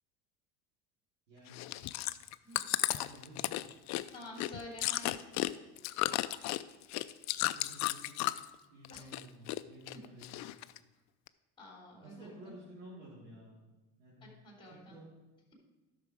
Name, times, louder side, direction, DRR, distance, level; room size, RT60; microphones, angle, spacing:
voice 1, 1.3-1.8 2.9-3.7 7.3-8.3 8.7-10.6 12.0-13.6 14.0-14.3 14.6-15.1, right 1 dB, 90° right, -10 dB, 3.7 m, -53 dB
Chewing mastication, 1.5-8.5 8.8-9.6 9.9-10.8 11.3-11.4, left 17 dB, 50° left, 0.4 m, -34 dB
voice 2, 4.1-5.5 8.9-9.1 11.6-12.5 14.2-15.0, left 1 dB, 15° left, -1 dB, 3.5 m, -49 dB
11.0 x 6.6 x 4.7 m, 1.1 s
supercardioid pair, 105°, 36 cm